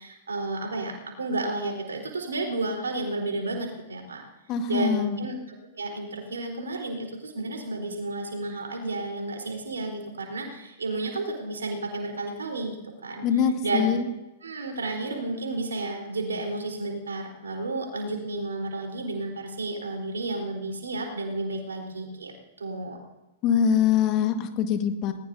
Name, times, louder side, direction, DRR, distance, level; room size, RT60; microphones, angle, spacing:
voice 1, 0.0-4.2 4.7-12.8 13.0-13.3 13.6-14.0 14.4-23.0, right 2 dB, 75° right, 2 dB, 4.1 m, -32 dB
voice 2, 4.5-5.2 13.2-14.0 23.4-25.1, left 8 dB, 35° left, 6 dB, 1.8 m, -23 dB
20.0 x 20.0 x 2.8 m, 0.99 s
figure-of-eight pair, 100°, 0 cm